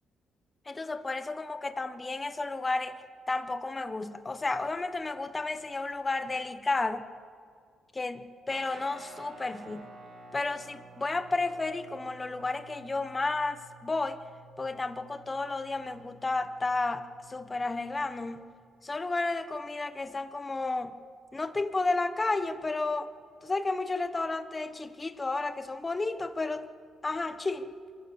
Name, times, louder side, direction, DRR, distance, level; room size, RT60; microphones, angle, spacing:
voice 1, 0.7-2.9 3.3-7.0 7.9-9.9 10.3-14.2 14.6-18.4 18.8-21.0 21.3-23.1 23.4-26.7 27.0-27.7, left 3 dB, 25° left, 10 dB, 1.3 m, -32 dB
Guitar, 8.5-18.3, right 3 dB, 75° right, 6.0 m, -52 dB
25.0 x 14.5 x 7.1 m, 2.1 s
cardioid pair, 90°, 0 cm